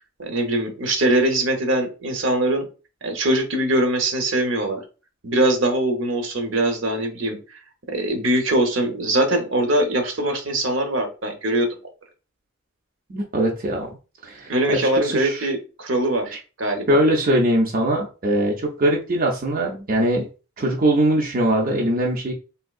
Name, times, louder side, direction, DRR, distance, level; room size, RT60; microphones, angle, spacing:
voice 1, 0.2-2.7 3.0-4.8 5.2-7.4 7.9-11.7 14.5-17.0, right 1 dB, 75° right, 5 dB, 0.8 m, -22 dB
voice 2, 13.1-13.9 14.2-14.5 14.8-15.5 16.9-20.3 20.6-22.3, right 1 dB, 45° right, -1 dB, 0.5 m, -21 dB
3.5 x 2.6 x 2.4 m, 0.34 s
head